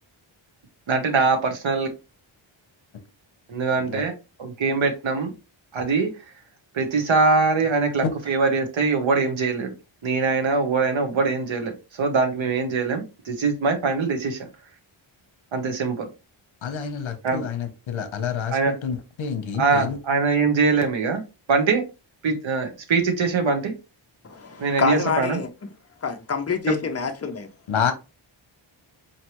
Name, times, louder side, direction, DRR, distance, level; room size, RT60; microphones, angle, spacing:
voice 1, 0.9-1.9 3.5-4.1 4.6-5.3 5.7-6.1 6.7-9.7 10.0-14.5 15.5-16.1 17.2-17.4 18.5-18.7 19.6-21.2 21.5-21.8 22.2-23.7 24.6-25.4 26.7-26.8, right 4 dB, 65° right, 1.1 m, -22 dB
voice 2, 16.6-20.0 27.7-27.9, left 7 dB, 70° left, 0.9 m, -28 dB
voice 3, 24.2-25.5 26.0-27.5, left 5 dB, 30° left, 0.6 m, -26 dB
4.3 x 3.3 x 3.0 m
wide cardioid pair, 170°, 49 cm